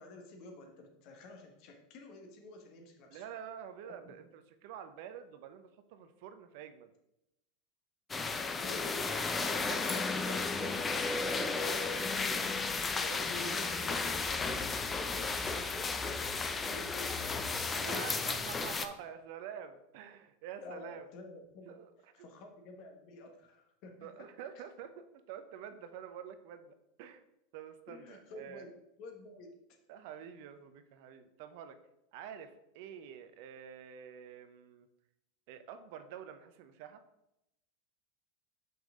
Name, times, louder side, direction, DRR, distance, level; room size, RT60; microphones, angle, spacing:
voice 1, 0.0-3.2 3.8-4.1 8.5-9.1 13.0-14.8 15.1-18.4 20.6-21.8 22.1-24.1 27.9-28.7 29.0-29.6, left 2 dB, 55° left, 4 dB, 1.5 m, -49 dB
voice 2, 3.1-6.9 9.5-12.2 17.7-21.1 21.7-21.9 22.2-22.3 24.0-27.2 27.5-28.6 29.9-31.8 32.1-34.9 35.5-37.0, right 8 dB, 60° right, 10 dB, 0.7 m, -48 dB
sound 1, 8.1-18.9, left 4 dB, 20° left, 0.6 m, -34 dB
5.9 x 5.4 x 3.7 m, 0.86 s
hypercardioid pair, 90°, 0 cm